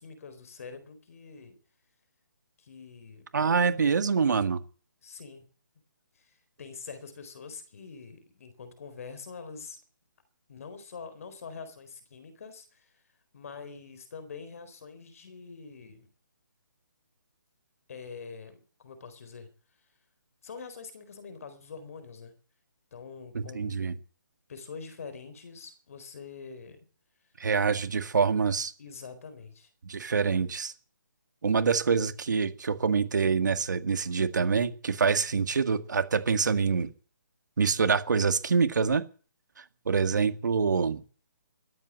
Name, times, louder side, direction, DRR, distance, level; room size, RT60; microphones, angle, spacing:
voice 1, 0.0-1.6 2.6-3.3 5.0-5.5 6.1-9.8 10.5-13.0 13.3-16.1 17.9-19.5 20.4-22.3 22.9-23.8 24.5-26.9 28.8-29.7, left 5 dB, 45° left, 11 dB, 4.1 m, -45 dB
voice 2, 3.3-4.6 23.3-23.9 27.4-28.7 29.9-30.7 31.4-36.9 37.6-39.0 39.6-41.0, right 5 dB, 65° right, 11 dB, 1.8 m, -26 dB
13.5 x 11.0 x 9.3 m, 0.42 s
hypercardioid pair, 170°, 11 cm